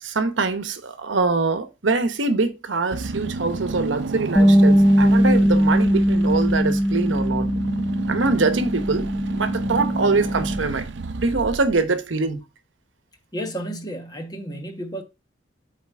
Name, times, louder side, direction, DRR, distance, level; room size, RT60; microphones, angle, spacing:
voice 1, 0.0-7.5 8.1-10.9 11.2-12.4, right 3 dB, 80° right, 0.9 m, -23 dB
Car / Engine, 2.9-12.1, right 3 dB, 65° right, 0.5 m, -32 dB
Bass guitar, 4.4-10.6, equal, ahead, 0.4 m, -20 dB
voice 2, 13.3-15.0, right 1 dB, 20° left, 1.2 m, -32 dB
7.6 x 4.1 x 3.5 m
head